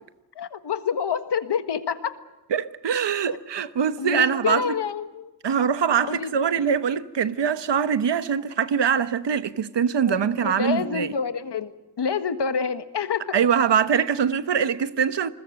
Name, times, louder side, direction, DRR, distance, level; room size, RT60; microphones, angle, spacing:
voice 1, 0.3-2.1 4.0-5.3 6.0-6.3 10.1-11.7 12.0-13.4, left 6 dB, 75° left, 1.5 m, -27 dB
voice 2, 2.5-4.7 5.4-11.1 13.3-15.3, right 7 dB, 85° right, 1.2 m, -23 dB
28.5 x 21.0 x 6.5 m
wide cardioid pair, 135°, 41 cm